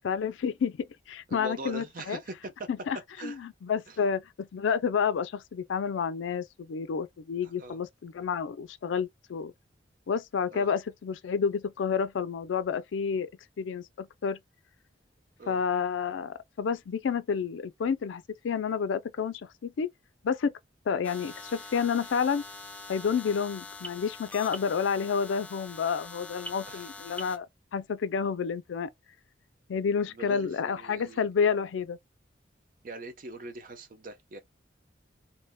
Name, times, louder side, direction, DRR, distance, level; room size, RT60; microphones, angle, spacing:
voice 1, 0.0-2.2 2.7-3.0 3.2-9.5 10.1-13.3 13.6-14.4 15.5-19.9 20.2-20.6 20.9-22.4 22.9-27.5 27.7-28.9 29.7-32.0, left 6 dB, 80° left, 0.4 m, -30 dB
voice 2, 1.3-2.7 3.2-3.4 3.9-4.0 7.4-7.8 10.5-10.7 15.4-15.6 26.7-26.9 30.1-31.2 32.8-34.4, right 2 dB, 45° right, 0.6 m, -42 dB
sound 1, 21.0-27.4, left 2 dB, 10° left, 0.4 m, -43 dB
2.7 x 2.1 x 3.5 m
head